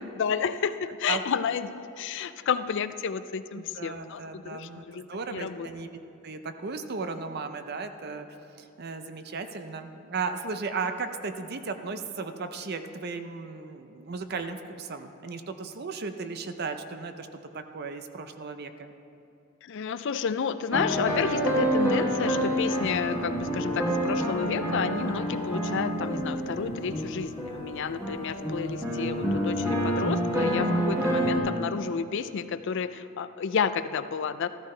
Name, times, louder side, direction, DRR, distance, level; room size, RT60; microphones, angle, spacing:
voice 1, 0.2-5.7 19.6-34.5, left 6 dB, 60° left, 13 dB, 0.4 m, -31 dB
voice 2, 3.5-6.0 6.2-8.3 8.6-17.3 17.5-18.9, right 4 dB, 50° right, 8 dB, 0.6 m, -35 dB
sound 1, 20.7-31.4, equal, 15° right, 2.0 m, -28 dB
14.0 x 14.0 x 3.3 m, 2.7 s
head